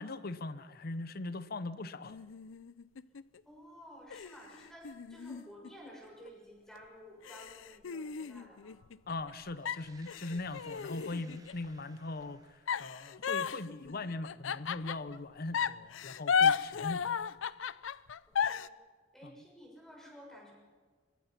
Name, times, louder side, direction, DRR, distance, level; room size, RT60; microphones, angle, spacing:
voice 1, 0.0-2.2 9.1-17.2, left 2 dB, 50° left, 15 dB, 0.8 m, -40 dB
sound 1, 2.0-3.4 4.1-6.3 6.8-6.9 7.2-9.3 9.7-11.7 12.7-15.2 15.5-18.7, left 6 dB, 85° left, 0.5 m, -34 dB
voice 2, 3.4-8.8 18.3-18.8 19.1-20.5, equal, ahead, -2 dB, 6.5 m, -53 dB
sound 2, 9.5-13.4, right 3 dB, 20° right, 1.7 m, -63 dB
23.0 x 22.5 x 5.8 m, 1.5 s
head